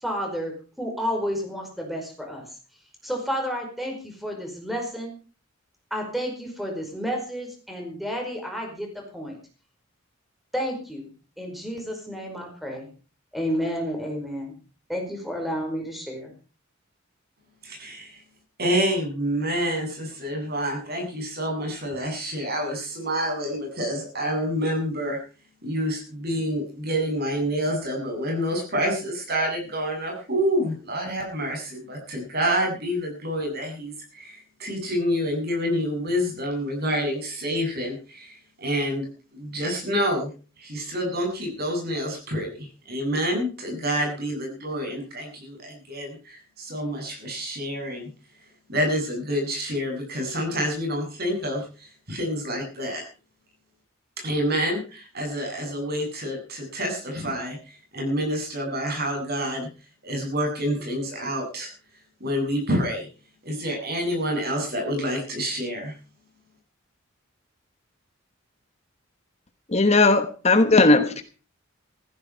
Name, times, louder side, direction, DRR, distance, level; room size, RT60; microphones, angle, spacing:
voice 1, 0.0-2.5 3.0-5.1 5.9-9.4 10.5-11.0 11.4-12.9 13.3-14.6 14.9-16.3, equal, ahead, 2 dB, 5.1 m, -31 dB
voice 2, 17.6-18.2 18.6-25.2 25.6-39.1 39.3-40.3 40.6-48.1 48.7-53.0 54.2-57.6 57.9-59.7 60.0-61.7 62.2-63.1 63.4-65.9, equal, 50° right, 2 dB, 7.9 m, -28 dB
voice 3, 69.7-71.2, left 3 dB, 30° left, 9 dB, 1.2 m, -17 dB
15.5 x 15.5 x 4.7 m, 0.37 s
head